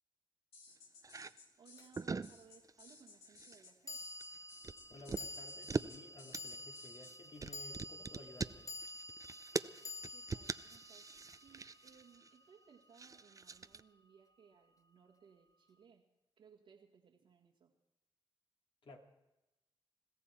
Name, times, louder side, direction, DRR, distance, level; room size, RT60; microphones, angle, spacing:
sound 1, 0.5-7.2, left 4 dB, 90° left, 2.4 m, -60 dB
sound 2, 1.0-1.3 1.8-2.4 2.6-3.0 3.3-3.7 4.0-6.0 6.3-12.3 12.9-13.8, right 4 dB, 35° right, 0.6 m, -43 dB
voice 1, 1.6-4.0 10.1-11.1 11.4-16.1 16.4-17.7, right 6 dB, 85° right, -7 dB, 1.9 m, -64 dB
sound 3, 1.8-1.9 3.9-12.3, left 2 dB, 35° left, 1.1 m, -49 dB
voice 2, 4.9-8.7 18.8-19.0, left 2 dB, 60° left, 2 dB, 2.6 m, -55 dB
21.5 x 15.0 x 4.5 m, 0.97 s
cardioid pair, 60°, 10 cm